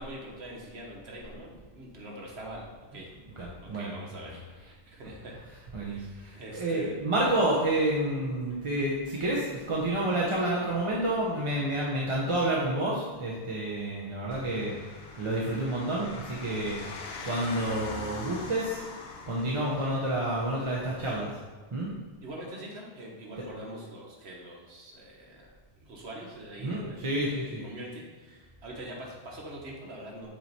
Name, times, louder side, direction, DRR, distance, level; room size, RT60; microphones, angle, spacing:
voice 1, 0.0-3.1 3.6-7.0 8.5-8.6 14.2-14.4 22.2-25.5 25.8-30.3, right 1 dB, 75° right, -1 dB, 1.4 m, -44 dB
voice 2, 3.4-3.9 5.7-14.7 15.2-16.8 17.2-18.8 19.3-21.3 21.7-21.9 26.6-27.6, right 1 dB, 35° right, -5 dB, 0.7 m, -29 dB
sound 1, 14.3-21.2, left 3 dB, 70° left, 0.9 m, -43 dB
7.3 x 3.1 x 4.1 m, 1.4 s
omnidirectional pair, 1.1 m